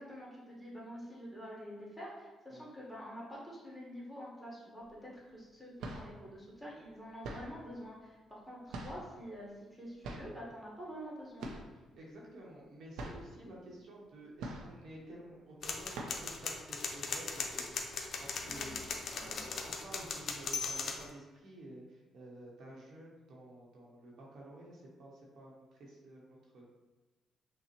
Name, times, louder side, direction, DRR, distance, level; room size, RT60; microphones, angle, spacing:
voice 1, 0.0-9.5 9.8-11.5 18.4-18.7 19.1-19.4, equal, ahead, -5 dB, 1.3 m, -47 dB
sound 1, 4.8-4.9 5.6-6.2 7.2-7.7 8.7-9.2 10.0-10.4 11.4-11.8 12.1-12.2 12.6-12.7 12.9-13.3 14.4-14.9 15.3-15.5 15.9-16.4, right 2 dB, 85° right, 0.5 m, -43 dB
voice 2, 12.0-18.8 19.1-26.7, right 1 dB, 70° right, -3 dB, 0.8 m, -52 dB
sound 2, 15.6-21.1, left 4 dB, 60° left, 0.5 m, -39 dB
5.7 x 2.0 x 2.9 m, 1.2 s
cardioid pair, 90°, 0 cm